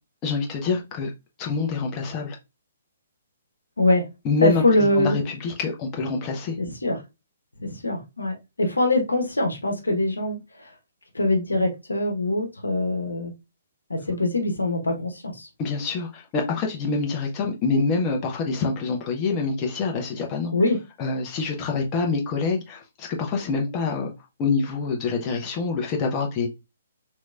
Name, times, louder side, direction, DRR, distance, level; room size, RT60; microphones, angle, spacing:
voice 1, 0.2-1.1 1.4-2.4 4.2-6.6 15.6-20.5 21.0-24.1 24.4-26.5, left 4 dB, 25° left, 0.7 m, -26 dB
voice 2, 4.4-5.2 6.6-7.0 7.6-10.4 11.1-13.3 13.9-15.5 20.5-20.8, left 1 dB, 80° left, 0.9 m, -23 dB
3.3 x 3.0 x 2.3 m
figure-of-eight pair, 125°, 0 cm